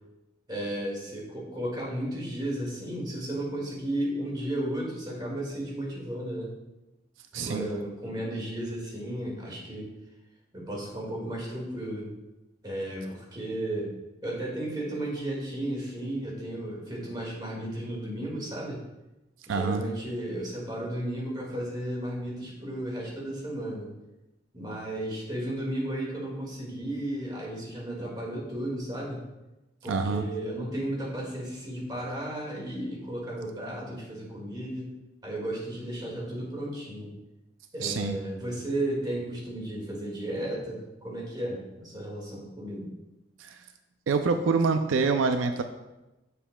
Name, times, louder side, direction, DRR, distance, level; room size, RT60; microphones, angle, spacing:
voice 1, 0.5-6.5 7.3-9.9 10.5-12.1 12.6-14.0 14.2-18.8 19.5-23.9 24.5-29.2 29.8-34.9 35.2-37.1 37.7-42.9, right 1 dB, 20° right, -3 dB, 1.9 m, -34 dB
voice 2, 7.3-7.7 19.5-19.8 29.8-30.2 37.8-38.2 43.4-43.6 44.1-45.6, right 4 dB, 90° right, 7 dB, 0.4 m, -26 dB
7.3 x 6.7 x 2.2 m, 0.98 s
head